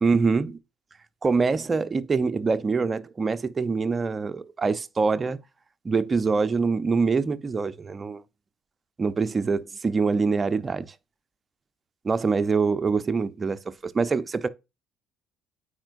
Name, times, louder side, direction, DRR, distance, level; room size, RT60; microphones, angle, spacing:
voice 1, 0.0-0.6 1.2-5.4 5.8-8.2 9.0-10.9 12.0-14.5, right 4 dB, 30° right, 0.7 m, -24 dB
8.8 x 4.4 x 2.5 m
hypercardioid pair, 65°, 0 cm